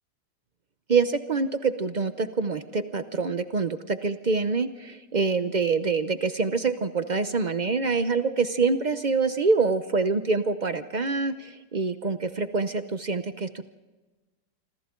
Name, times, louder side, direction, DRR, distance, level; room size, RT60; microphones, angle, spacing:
voice 1, 0.9-13.6, right 4 dB, 80° right, 9 dB, 0.4 m, -26 dB
27.5 x 25.5 x 3.8 m, 1.2 s
omnidirectional pair, 2.0 m